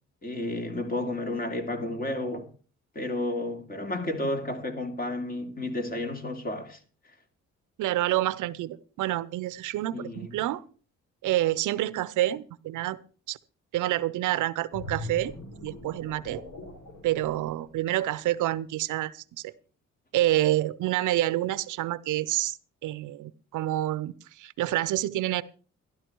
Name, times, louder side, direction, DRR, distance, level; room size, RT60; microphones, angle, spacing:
voice 1, 0.2-2.5 2.9-6.8 9.9-10.3, left 1 dB, 30° left, 3.0 m, -32 dB
voice 2, 7.8-10.6 11.2-13.0 13.3-13.4 13.7-15.3 15.6-16.4 17.0-19.5 20.1-22.6 22.8-25.4, right 15 dB, 80° right, 0.7 m, -28 dB
sound 1, 14.7-18.3 18.7-19.0, left 1 dB, 85° left, 5.5 m, -41 dB
12.5 x 12.5 x 4.6 m
cardioid pair, 90°, 30 cm